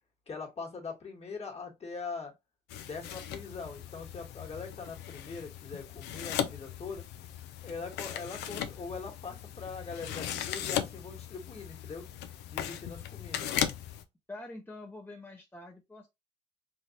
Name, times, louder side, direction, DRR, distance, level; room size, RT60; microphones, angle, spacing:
voice 1, 0.3-2.3 2.8-7.0 7.6-12.1 12.5-13.5, left 4 dB, 40° left, 1.5 m, -42 dB
sound 1, 2.7-14.0, left 10 dB, 75° left, 0.5 m, -38 dB
voice 2, 14.3-16.1, left 2 dB, 10° left, 0.7 m, -45 dB
3.3 x 2.6 x 2.8 m
supercardioid pair, 65°, 17 cm